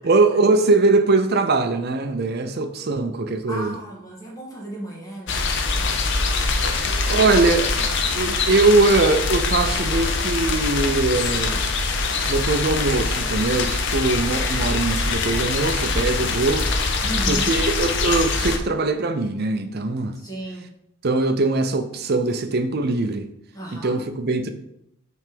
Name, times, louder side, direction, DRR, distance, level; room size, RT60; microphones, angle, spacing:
voice 1, 0.0-3.8 6.6-7.7 8.1-11.6 12.3-16.7 17.3-20.2 21.0-23.3 23.7-24.5, right 3 dB, 45° right, 0.5 m, -21 dB
voice 2, 3.5-6.0 6.7-7.5 8.2-8.5 17.0-17.5 20.1-20.7 23.5-24.0, right 1 dB, 15° left, 1.5 m, -35 dB
sound 1, 5.3-18.6, left 3 dB, 55° left, 0.6 m, -23 dB
6.2 x 3.4 x 5.2 m
head